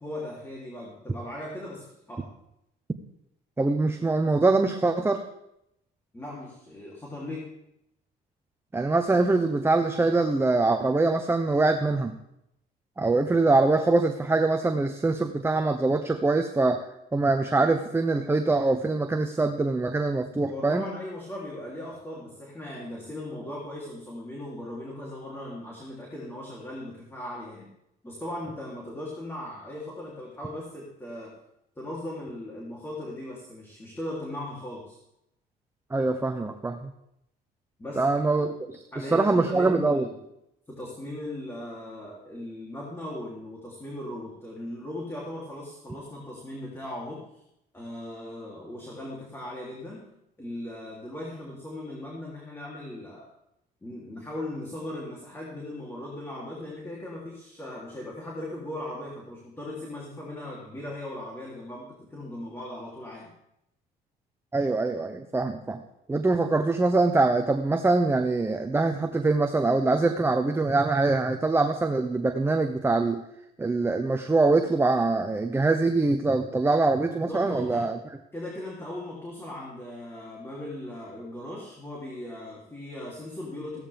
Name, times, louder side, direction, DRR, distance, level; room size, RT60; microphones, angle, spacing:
voice 1, 0.0-2.3 6.1-7.5 20.5-27.7 28.0-31.3 31.7-35.0 37.8-38.5 38.9-40.1 40.7-47.4 47.7-50.1 50.4-53.3 53.8-63.3 77.2-77.9 78.3-83.8, left 1 dB, 15° left, -4 dB, 3.3 m, -38 dB
voice 2, 3.6-5.2 8.7-12.1 13.0-16.8 17.1-20.8 35.9-36.9 38.0-40.1 64.5-65.8 66.1-73.2 73.6-78.0, right 3 dB, 15° right, 5 dB, 0.9 m, -24 dB
16.0 x 13.5 x 3.6 m, 0.81 s
cardioid pair, 110°, 17 cm